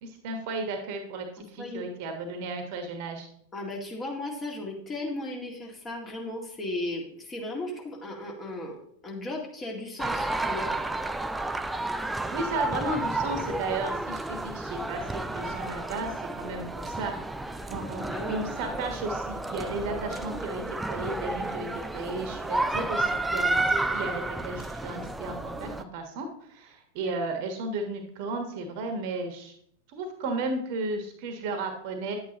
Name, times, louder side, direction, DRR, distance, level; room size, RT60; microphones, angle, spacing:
voice 1, 0.0-3.3 12.3-17.1 17.7-21.7 21.9-29.5 29.9-32.2, right 2 dB, 45° right, 6 dB, 1.3 m, -34 dB
voice 2, 3.5-8.8 9.0-10.7 18.0-18.4 27.0-27.1, left 1 dB, 20° left, -1 dB, 2.2 m, -36 dB
sound 1, 10.0-25.8, right 2 dB, 5° right, 0.4 m, -31 dB
10.0 x 8.6 x 3.0 m, 0.67 s
figure-of-eight pair, 90°, 0 cm